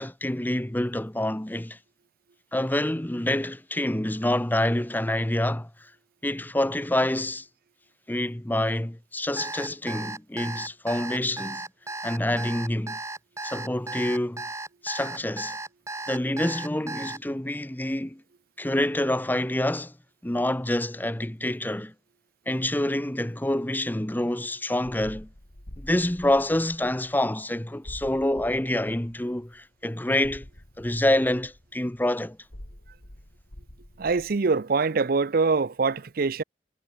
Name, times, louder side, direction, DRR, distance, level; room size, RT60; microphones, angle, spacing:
voice 1, 0.0-1.8 2.5-5.9 6.2-7.5 8.1-11.6 12.0-13.0 13.4-14.5 14.8-15.6 16.1-18.2 18.6-19.9 20.2-21.9 22.5-25.3 25.8-30.5 30.8-32.4, left 1 dB, 10° left, 0.9 m, -27 dB
Alarm, 9.4-17.2, right 3 dB, 15° right, 6.8 m, -35 dB
sound 1, 24.8-27.4 27.8-29.7 30.2-34.4, left 1 dB, 70° left, 3.5 m, -46 dB
voice 2, 34.0-36.4, right 4 dB, 55° right, 0.6 m, -24 dB
head